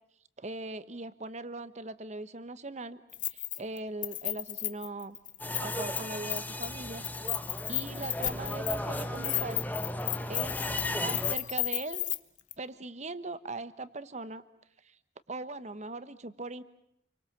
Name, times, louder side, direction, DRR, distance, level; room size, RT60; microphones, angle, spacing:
voice 1, 0.4-3.0 3.3-5.2 5.6-7.0 7.7-9.7 10.3-10.6 11.0-12.1 12.6-14.4 14.8-15.0 15.3-16.6, right 2 dB, 40° right, 14 dB, 1.1 m, -40 dB
Keys jangling, 3.1-3.8 4.0-6.0 6.3-6.7 7.0-12.2 12.5-12.6, left 14 dB, 45° left, 1.0 m, -33 dB
sound 1, 5.4-11.4, left 1 dB, 10° left, 1.3 m, -35 dB
29.0 x 24.0 x 7.2 m, 0.76 s
head